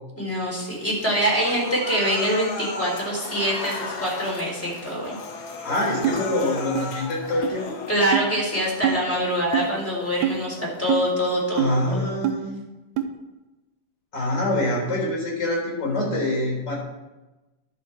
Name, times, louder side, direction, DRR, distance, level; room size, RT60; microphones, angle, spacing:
voice 1, 0.1-5.2 7.9-12.1, equal, 5° left, -5 dB, 3.1 m, -25 dB
Applause / Crowd, 0.6-11.5, left 4 dB, 90° left, 0.8 m, -39 dB
Human voice, 1.1-3.1 3.5-4.2 4.6-4.7 5.0-7.1 7.5-8.1, left 3 dB, 70° left, 2.3 m, -36 dB
voice 2, 5.6-7.8 11.5-12.6 14.1-16.8, left 1 dB, 35° left, -2 dB, 4.3 m, -25 dB
sound 1, 6.0-6.2 6.8-6.9 7.4-7.5 8.1-8.3 8.8-9.0 9.5-9.7 10.2-10.4 10.9-11.0 11.6-11.7 12.2-12.4 13.0-13.1, right 11 dB, 85° right, 2.1 m, -23 dB
11.5 x 7.2 x 4.6 m, 1.1 s
omnidirectional pair, 3.3 m